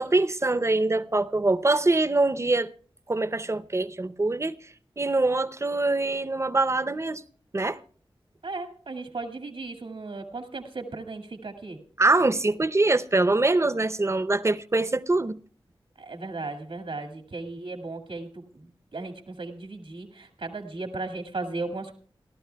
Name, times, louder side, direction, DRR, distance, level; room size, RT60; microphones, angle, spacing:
voice 1, 0.0-2.7 3.1-4.6 5.0-7.2 7.5-7.8 12.0-15.4, right 2 dB, 30° right, 0.6 m, -24 dB
voice 2, 8.4-11.8 16.0-21.9, right 3 dB, 80° right, 1.9 m, -36 dB
28.5 x 12.0 x 2.2 m
wide cardioid pair, 70°, 9 cm